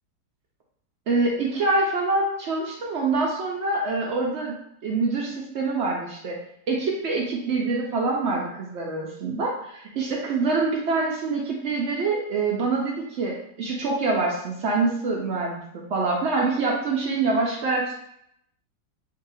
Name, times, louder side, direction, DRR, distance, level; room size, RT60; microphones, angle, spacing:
voice 1, 1.1-4.6 4.8-6.4 6.7-17.9, right 3 dB, 85° right, -2 dB, 0.6 m, -25 dB
3.2 x 2.7 x 4.0 m, 0.73 s
omnidirectional pair, 1.9 m